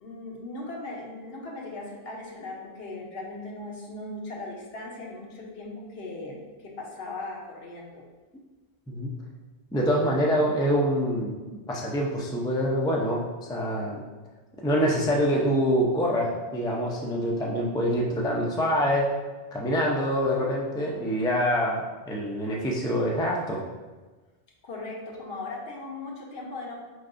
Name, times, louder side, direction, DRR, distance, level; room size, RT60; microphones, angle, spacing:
voice 1, 0.0-8.0 24.6-26.8, left 2 dB, 75° left, -1 dB, 1.0 m, -38 dB
voice 2, 9.7-14.0 14.6-19.1 19.5-23.6, equal, 5° left, -2 dB, 0.3 m, -25 dB
4.4 x 3.4 x 2.5 m, 1.2 s
omnidirectional pair, 1.0 m